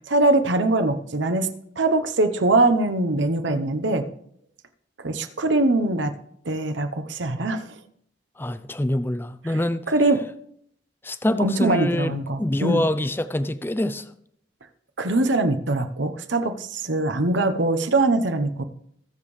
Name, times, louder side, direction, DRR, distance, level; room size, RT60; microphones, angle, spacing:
voice 1, 0.1-1.5 1.8-4.1 5.0-6.2 6.5-7.7 9.5-9.6 9.9-10.2 11.4-12.9 15.0-18.6, right 2 dB, 75° right, 1.0 m, -22 dB
voice 2, 8.4-9.8 11.0-14.0, left 1 dB, 10° left, 0.4 m, -25 dB
21.0 x 7.2 x 3.3 m
head